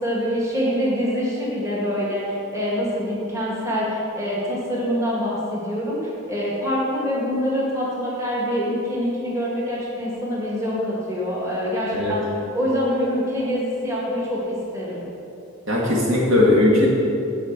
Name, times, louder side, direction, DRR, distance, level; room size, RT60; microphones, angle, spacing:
voice 1, 0.0-12.2 12.5-15.1, equal, 15° right, -6 dB, 1.8 m, -25 dB
voice 2, 15.7-17.0, left 1 dB, 70° right, -4 dB, 2.2 m, -18 dB
9.7 x 4.9 x 8.0 m, 2.8 s
head